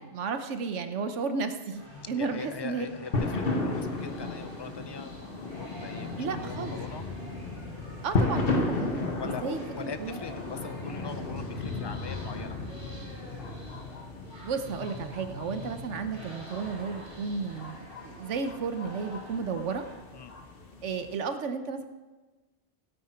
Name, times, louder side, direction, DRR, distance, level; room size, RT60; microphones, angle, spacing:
voice 1, 0.0-1.8 2.1-2.9 6.2-6.7 8.0-10.2 14.4-19.8 20.8-21.8, right 5 dB, 90° right, 9 dB, 1.2 m, -33 dB
sound 1, 1.7-19.9, equal, 25° right, 5.2 m, -48 dB
voice 2, 2.2-7.1 9.2-12.6 20.1-20.3, left 5 dB, 35° left, 10 dB, 0.4 m, -41 dB
sound 2, 3.1-21.1, left 3 dB, 55° left, 1.3 m, -34 dB
16.5 x 8.5 x 4.4 m, 1.3 s
omnidirectional pair, 1.2 m